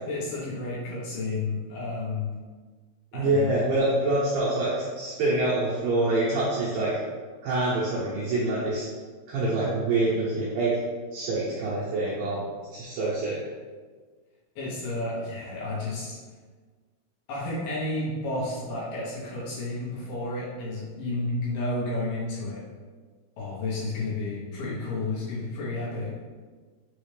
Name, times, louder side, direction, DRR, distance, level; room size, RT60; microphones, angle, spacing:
voice 1, 0.1-2.3 3.1-3.5 14.6-16.2 17.3-22.6 23.4-26.1, left 2 dB, 70° left, -7 dB, 2.5 m, -31 dB
voice 2, 3.1-7.0 7.4-8.9 9.3-10.8 11.1-12.4 12.7-13.4, right 2 dB, 75° right, -7 dB, 2.1 m, -26 dB
6.3 x 2.4 x 3.2 m, 1.5 s
omnidirectional pair, 4.8 m